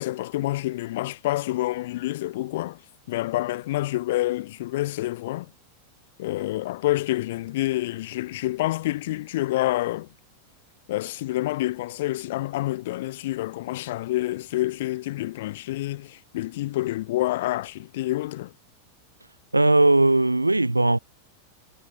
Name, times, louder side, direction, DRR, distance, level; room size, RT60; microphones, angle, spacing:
voice 1, 0.0-2.8 3.1-5.5 6.2-10.1 10.9-18.5, left 16 dB, 55° left, 6.3 m, -28 dB
voice 2, 19.5-21.0, right 2 dB, 85° right, 4.4 m, -18 dB
figure-of-eight pair, 90°, 0 cm